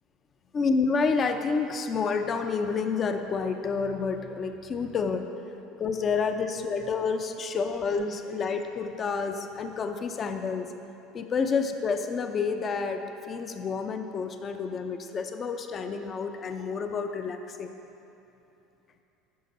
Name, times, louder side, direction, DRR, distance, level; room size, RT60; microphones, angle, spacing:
voice 1, 0.5-5.3 5.8-10.7 11.1-17.7, left 5 dB, 35° left, 6 dB, 0.6 m, -29 dB
9.4 x 5.8 x 5.3 m, 2.9 s
supercardioid pair, 100°, 0 cm